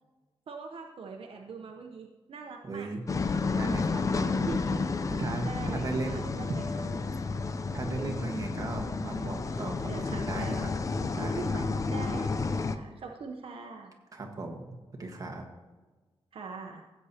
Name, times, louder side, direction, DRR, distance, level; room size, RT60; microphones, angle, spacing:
voice 1, 0.5-2.9 4.2-4.9 5.5-7.1 9.8-10.6 11.0-12.3 12.7-13.9 16.3-16.8, right 4 dB, 70° right, 2 dB, 0.9 m, -42 dB
voice 2, 2.6-3.0 3.5-4.5 5.1-6.3 7.7-10.7 11.1-11.6 14.1-15.4, right 3 dB, 35° right, 1 dB, 1.5 m, -37 dB
sound 1, 3.1-12.8, left 4 dB, 35° left, 0.5 m, -31 dB
16.0 x 8.3 x 2.9 m, 1.3 s
wide cardioid pair, 155°, 10 cm